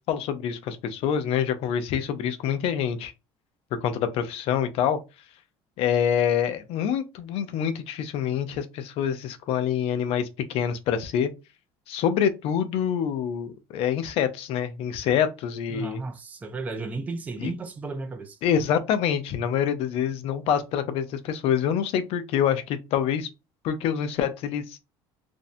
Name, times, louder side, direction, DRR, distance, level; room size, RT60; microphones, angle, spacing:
voice 1, 0.1-3.1 3.8-5.0 5.8-11.3 11.9-16.0 17.4-17.5 18.4-23.3 23.6-24.8, left 8 dB, 60° left, 0.5 m, -26 dB
voice 2, 15.7-18.4, right 3 dB, 15° right, 0.4 m, -34 dB
2.6 x 2.1 x 2.5 m
cardioid pair, 120°, 11 cm